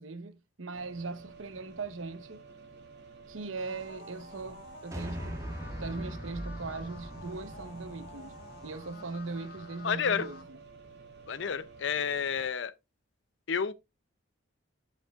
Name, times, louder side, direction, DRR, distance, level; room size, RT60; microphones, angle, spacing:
voice 1, 0.0-2.4 3.3-5.5 5.8-8.4 8.6-10.4, right 3 dB, 85° right, 0.9 m, -39 dB
sound 1, 0.7-12.5, right 4 dB, 55° right, 2.3 m, -52 dB
sound 2, 3.6-10.4, left 2 dB, 50° left, 1.5 m, -50 dB
sound 3, 4.9-9.3, equal, 15° right, 1.3 m, -41 dB
voice 2, 9.8-10.3 11.3-12.7 13.5-13.7, left 6 dB, 70° left, 0.5 m, -30 dB
11.5 x 5.3 x 2.4 m
head